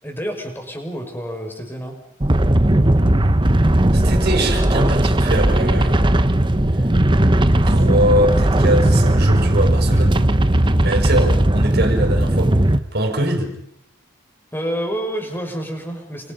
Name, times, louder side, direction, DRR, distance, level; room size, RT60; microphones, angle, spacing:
voice 1, 0.0-2.0 14.5-16.3, equal, 10° left, 3 dB, 6.1 m, -28 dB
sound 1, 2.2-12.8, right 1 dB, 25° right, 1.0 m, -16 dB
voice 2, 3.9-6.0 7.7-10.2 10.8-12.5 12.9-13.5, right 1 dB, 50° right, 5 dB, 5.7 m, -22 dB
30.0 x 28.0 x 5.5 m, 0.74 s
head